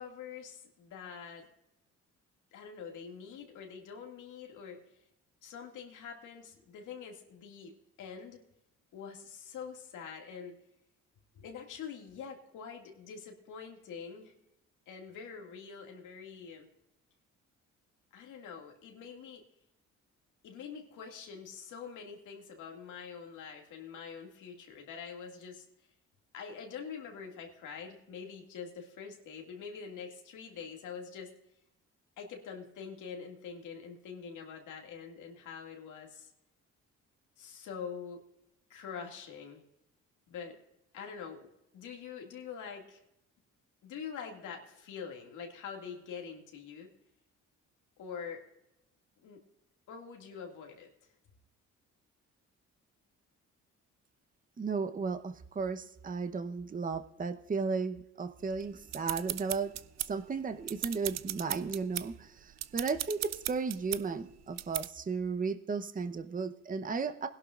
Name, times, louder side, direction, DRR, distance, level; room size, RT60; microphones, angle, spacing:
voice 1, 0.0-1.5 2.5-5.0 5.4-8.4 8.9-10.6 11.3-14.3 14.9-16.7 18.1-19.4 20.4-25.7 26.3-31.3 32.2-36.3 37.4-38.2 38.7-39.6 40.3-40.6 40.9-41.5 41.7-43.0 43.8-46.9 48.0-48.4 49.2-49.4 49.9-50.9, left 6 dB, 85° left, 2 dB, 2.2 m, -45 dB
voice 2, 54.6-59.7 60.1-67.3, right 4 dB, 25° right, 9 dB, 0.9 m, -35 dB
sound 1, 58.5-60.3 60.6-62.1 62.5-64.0 64.6-64.9, right 13 dB, 60° right, 0.5 m, -37 dB
20.5 x 11.5 x 2.5 m, 0.86 s
cardioid pair, 90°, 30 cm